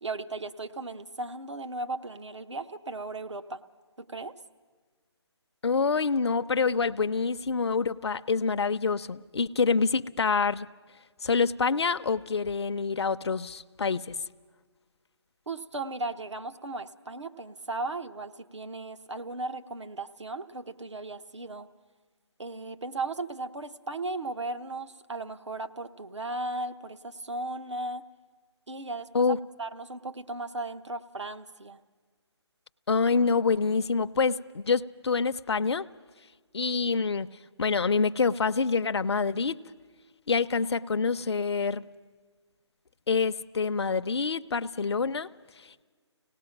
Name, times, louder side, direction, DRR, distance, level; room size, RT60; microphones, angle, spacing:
voice 1, 0.0-3.6 4.0-4.3 15.5-21.7 22.4-28.0 28.7-31.8, right 2 dB, 80° right, 8 dB, 1.0 m, -36 dB
voice 2, 5.6-10.7 11.2-14.1 29.1-29.4 32.9-35.9 36.5-37.3 37.6-39.6 40.3-41.8 43.1-45.3, left 5 dB, 65° left, 10 dB, 0.5 m, -26 dB
25.0 x 18.0 x 5.8 m, 1.5 s
figure-of-eight pair, 155°, 15 cm